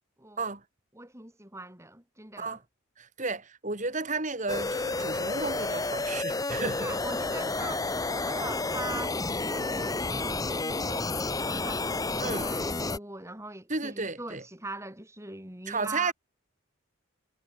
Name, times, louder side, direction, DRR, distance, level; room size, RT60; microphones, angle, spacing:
voice 1, 0.9-2.6 6.7-9.2 9.5-16.1, right 2 dB, 15° right, 3.9 m, -42 dB
voice 2, 3.0-6.9 12.2-12.5 13.7-14.4 15.7-16.1, right 3 dB, 35° right, 3.4 m, -33 dB
sound 1, 4.5-13.0, left 3 dB, 15° left, 0.8 m, -30 dB
head